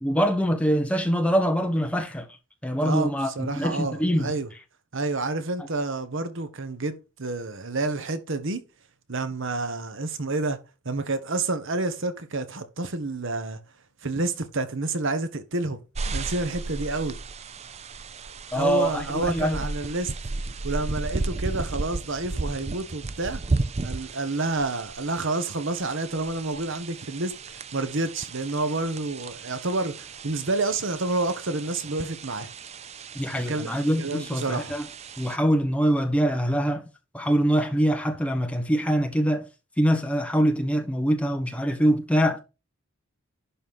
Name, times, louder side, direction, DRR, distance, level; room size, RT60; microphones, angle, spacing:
voice 1, 0.0-2.3 2.6-4.3 18.5-19.6 33.1-34.9 35.2-36.8 37.1-39.4 39.8-42.4, equal, 5° left, 1.4 m, -24 dB
voice 2, 2.8-4.5 4.9-8.6 9.1-10.6 10.8-13.6 14.0-17.2 18.5-20.1 20.6-23.4 23.8-32.5 33.4-34.7, right 2 dB, 60° right, 1.2 m, -29 dB
sound 1, 15.9-35.4, right 3 dB, 30° right, 0.5 m, -34 dB
11.5 x 4.2 x 5.5 m
head